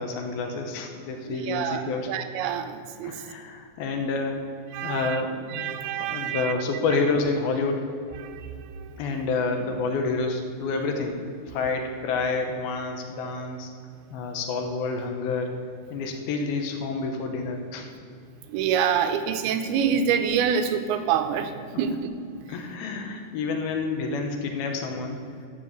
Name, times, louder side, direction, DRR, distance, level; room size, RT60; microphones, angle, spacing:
voice 1, 0.0-2.1 3.0-4.4 4.8-7.9 9.0-11.2 11.5-13.7 14.1-15.6 15.9-17.9 22.5-25.2, left 4 dB, 75° left, 4 dB, 2.7 m, -28 dB
voice 2, 1.3-3.2 4.7-5.2 5.5-6.5 8.2-9.0 18.5-22.1, right 7 dB, 85° right, 8 dB, 2.6 m, -27 dB
12.5 x 4.6 x 7.9 m, 2.4 s
omnidirectional pair, 4.5 m